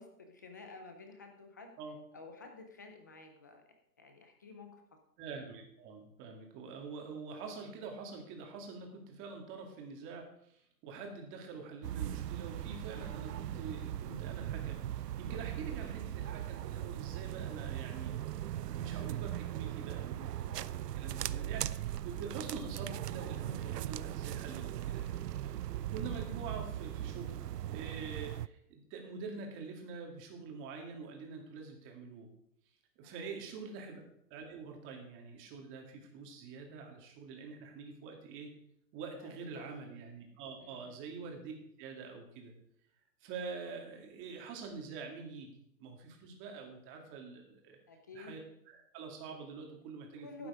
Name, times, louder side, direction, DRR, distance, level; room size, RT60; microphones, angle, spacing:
voice 1, 0.0-1.7 2.1-3.6 4.0-4.8 15.4-15.6 25.6-25.8 33.0-33.3 39.2-39.7 40.6-41.1 47.9-48.4 50.2-50.5, left 3 dB, 15° left, 5 dB, 0.4 m, -52 dB
voice 2, 5.2-25.1 25.4-32.3 33.0-34.0 34.3-38.5 38.9-41.5 41.8-42.5 43.2-47.8 48.1-48.4 48.7-50.5, right 4 dB, 25° right, 2 dB, 2.3 m, -46 dB
sound 1, 11.8-28.5, right 12 dB, 75° right, 0.6 m, -39 dB
12.0 x 8.7 x 4.9 m, 0.73 s
hypercardioid pair, 150°, 48 cm